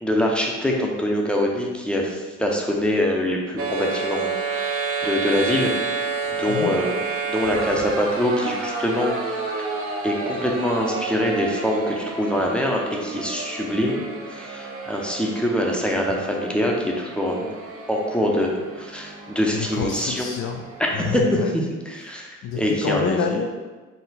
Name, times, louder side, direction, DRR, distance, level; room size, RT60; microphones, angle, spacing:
voice 1, 0.0-5.7 6.3-7.0 7.3-9.1 10.0-14.0 14.3-17.5 17.9-20.3 20.8-21.2 21.9-23.2, left 1 dB, 5° left, -1 dB, 0.6 m, -24 dB
sound 1, 3.6-21.4, right 4 dB, 50° right, 0.8 m, -30 dB
voice 2, 6.5-6.8 19.5-20.7 20.9-21.5 21.9-23.5, left 6 dB, 60° left, 2 dB, 0.4 m, -28 dB
4.1 x 2.1 x 4.0 m, 1.3 s
cardioid pair, 90°, 30 cm